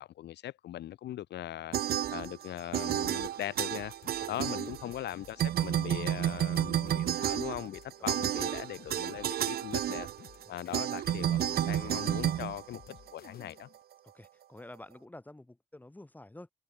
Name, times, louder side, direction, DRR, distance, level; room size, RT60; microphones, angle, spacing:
voice 1, 0.0-1.7 2.1-3.9 4.3-10.1 10.5-12.8 13.1-13.7, left 13 dB, 80° left, 2.9 m, -40 dB
sound 1, 1.7-2.5 2.7-5.1 5.4-13.3, right 11 dB, 65° right, 1.1 m, -31 dB
sound 2, 3.7-13.8, left 10 dB, 60° left, 7.9 m, -55 dB
voice 2, 4.2-4.7 8.0-8.3 10.6-10.8 14.1-16.5, left 1 dB, 10° left, 6.6 m, -50 dB
cardioid pair, 120°, 17 cm